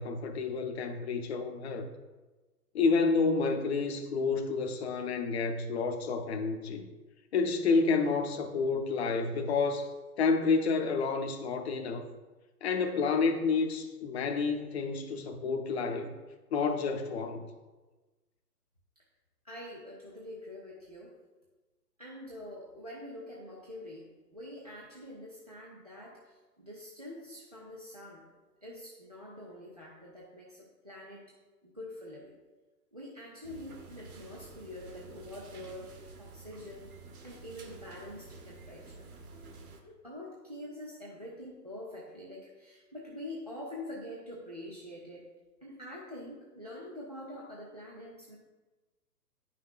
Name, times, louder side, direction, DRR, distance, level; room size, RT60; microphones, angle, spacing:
voice 1, 0.0-1.9 2.7-6.9 7.3-9.9 10.2-12.0 12.6-16.1 16.5-17.5, left 4 dB, 40° left, 4 dB, 0.7 m, -29 dB
voice 2, 19.4-21.2 22.0-28.3 28.6-31.3 31.6-32.4 32.9-35.9 36.2-36.9 37.2-39.1 39.8-45.3 45.6-48.4, left 1 dB, 30° right, -4 dB, 0.3 m, -45 dB
sound 1, 33.4-39.8, right 3 dB, 60° right, 1.1 m, -50 dB
9.3 x 5.7 x 2.4 m, 1.2 s
figure-of-eight pair, 130°, 48 cm